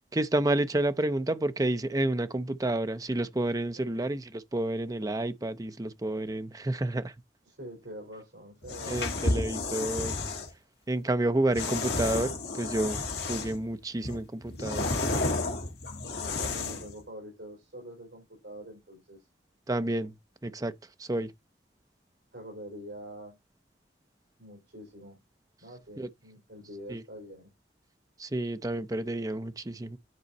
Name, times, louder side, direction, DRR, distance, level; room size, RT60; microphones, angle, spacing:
voice 1, 0.1-7.1 8.9-10.1 10.9-13.0 13.3-15.0 19.7-20.1 20.4-21.3 26.0-26.1 26.9-27.0 28.2-30.0, right 1 dB, 20° right, 0.5 m, -30 dB
voice 2, 3.7-4.1 7.5-9.0 15.9-19.3 22.3-23.4 24.4-25.2 25.6-27.5, equal, 70° right, 4.3 m, -45 dB
sound 1, 8.6-10.5 11.5-13.6 14.0-16.9, left 3 dB, 65° left, 2.0 m, -31 dB
9.6 x 4.3 x 4.1 m
head